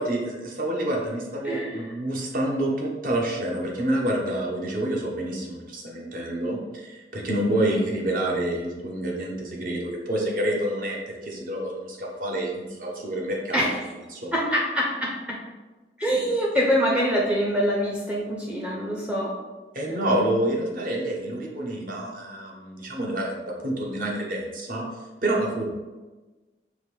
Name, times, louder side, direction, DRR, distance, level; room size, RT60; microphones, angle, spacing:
voice 1, 0.1-13.7 14.1-14.3 19.7-24.8 25.2-25.8, right 1 dB, 50° right, -1 dB, 0.8 m, -28 dB
voice 2, 1.4-1.9 7.5-7.9 13.5-13.9 14.3-15.4 16.0-19.3, equal, 5° right, -3 dB, 0.5 m, -25 dB
5.1 x 2.5 x 3.2 m, 1.2 s
head